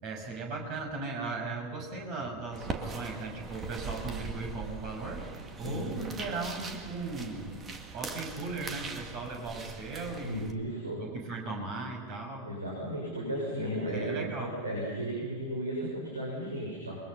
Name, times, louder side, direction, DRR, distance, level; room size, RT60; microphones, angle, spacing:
voice 1, 0.0-7.6 7.9-10.6 10.9-12.5 13.9-14.5, right 3 dB, 40° right, 2 dB, 6.8 m, -37 dB
sound 1, 2.5-10.5, right 4 dB, 20° right, 2.2 m, -41 dB
voice 2, 5.6-6.0 10.2-11.0 12.4-17.0, right 1 dB, 80° right, -2 dB, 7.0 m, -35 dB
29.0 x 23.0 x 5.7 m, 1.5 s
figure-of-eight pair, 90°, 0 cm